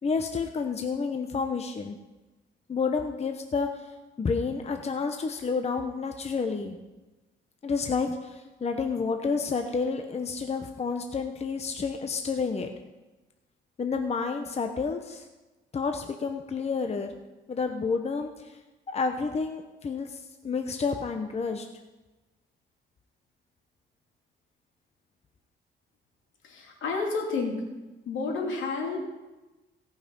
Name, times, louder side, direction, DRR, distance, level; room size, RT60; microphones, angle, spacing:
voice 1, 0.0-2.0 2.7-3.8 4.2-6.8 7.6-12.7 13.8-15.3 15.7-17.2 17.5-18.6 18.9-21.7, left 5 dB, 35° left, 5 dB, 0.9 m, -30 dB
voice 2, 26.4-27.6 28.1-29.0, left 4 dB, 75° left, 0 dB, 2.7 m, -30 dB
17.0 x 5.8 x 5.3 m, 1.1 s
cardioid pair, 90°, 20 cm